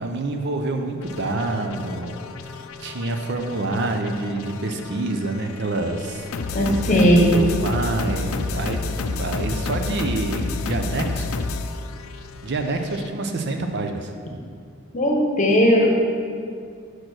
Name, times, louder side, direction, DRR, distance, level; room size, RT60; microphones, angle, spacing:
voice 1, 0.0-2.2 2.8-11.3 12.4-14.1, right 2 dB, 55° right, 5 dB, 0.6 m, -27 dB
sound 1, 1.0-13.1, left 3 dB, 90° left, 0.4 m, -30 dB
voice 2, 6.5-7.4 14.9-15.9, equal, 35° left, -1 dB, 1.0 m, -17 dB
6.4 x 4.4 x 6.1 m, 2.2 s
head